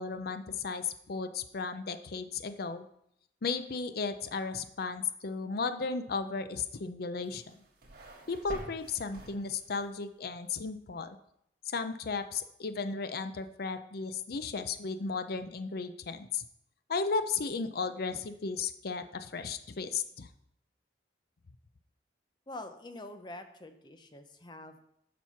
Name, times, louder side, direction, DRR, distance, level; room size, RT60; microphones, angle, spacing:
voice 1, 0.0-2.9 3.4-7.6 8.3-11.2 11.7-16.4 16.9-20.3, left 4 dB, 60° left, 10 dB, 0.5 m, -35 dB
sound 1, 7.2-9.9, right 1 dB, 55° right, 1.7 m, -48 dB
voice 2, 22.5-24.8, left 2 dB, 25° left, 8 dB, 0.8 m, -45 dB
7.3 x 6.1 x 5.7 m, 0.74 s
head